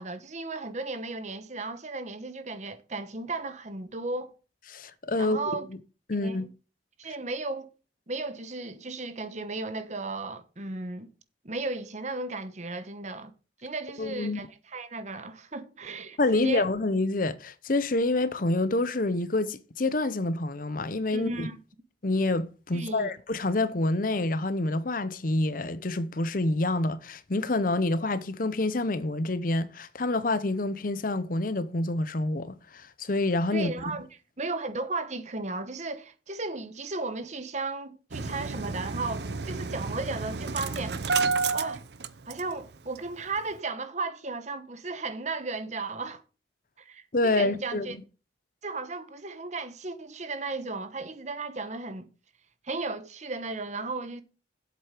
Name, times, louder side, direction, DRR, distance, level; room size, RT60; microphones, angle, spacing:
voice 1, 0.0-4.3 5.2-5.7 6.2-6.5 7.0-7.7 8.1-11.1 11.4-13.3 13.6-16.6 21.1-21.6 22.7-23.1 33.5-34.1 34.4-41.0 41.5-41.8 42.3-46.2 46.8-48.0 48.6-52.1 52.6-54.2, right 3 dB, 40° right, 1.1 m, -35 dB
voice 2, 4.7-5.4 6.1-6.5 14.0-14.4 16.2-21.5 22.0-33.7 47.1-47.9, left 2 dB, 45° left, 0.8 m, -27 dB
Engine starting, 38.1-42.7 43.0-43.1 43.4-43.5, right 4 dB, 60° right, 0.7 m, -30 dB
7.9 x 7.8 x 5.0 m
head